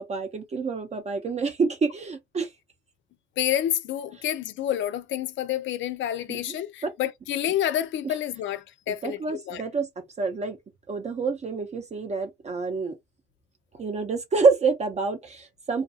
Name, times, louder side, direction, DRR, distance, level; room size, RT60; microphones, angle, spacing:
voice 1, 0.0-2.5 6.3-6.4 6.8-6.9 8.0-8.1 9.0-9.9 10.2-10.6 10.9-13.0 13.8-15.8, right 4 dB, 35° right, 0.5 m, -27 dB
voice 2, 3.4-9.6, left 11 dB, 70° left, 0.5 m, -29 dB
2.4 x 2.3 x 2.7 m
cardioid pair, 90°, 20 cm